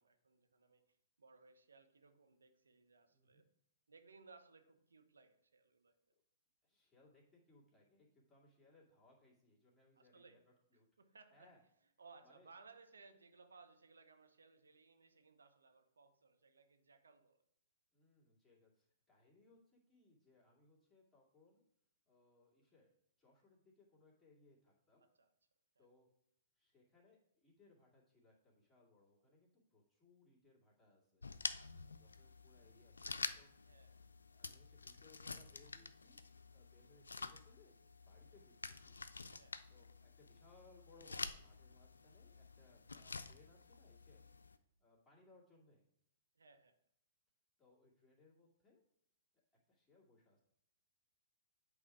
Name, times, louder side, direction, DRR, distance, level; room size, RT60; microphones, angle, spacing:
voice 1, 0.0-3.5 3.9-5.9 10.0-10.4 11.0-11.5 12.0-17.4 25.2-25.3 25.8-25.9 31.6-31.9 33.6-34.0 38.3-38.4 39.3-39.6 46.3-46.8, right 4 dB, 80° right, 7 dB, 0.8 m, -63 dB
voice 2, 3.1-3.4 6.6-10.9 11.3-11.6 12.2-12.5 17.9-21.6 22.1-25.0 25.8-26.1 26.6-31.2 31.8-33.5 34.3-36.2 36.5-39.0 39.7-44.2 44.8-45.9 47.6-48.8 49.3-49.4 49.7-50.4, left 3 dB, 5° left, -6 dB, 2.1 m, -69 dB
sound 1, 31.2-44.6, left 4 dB, 85° left, 0.4 m, -49 dB
8.2 x 3.6 x 4.7 m, 0.73 s
hypercardioid pair, 115°, 0 cm